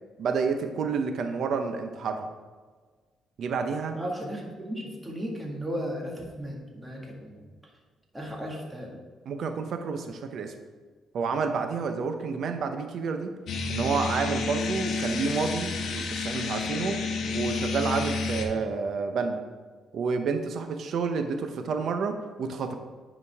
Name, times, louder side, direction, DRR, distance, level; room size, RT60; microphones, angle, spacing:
voice 1, 0.2-2.3 3.4-4.0 9.3-10.5 11.1-13.3 13.7-17.0 17.3-19.4 19.9-22.7, right 5 dB, 65° right, 6 dB, 0.8 m, -29 dB
voice 2, 3.9-7.5 8.1-9.0, equal, 10° right, -1 dB, 1.9 m, -35 dB
sound 1, 13.5-18.5, left 4 dB, 70° left, 1.0 m, -30 dB
9.6 x 5.2 x 3.6 m, 1.5 s
cardioid pair, 90°, 0 cm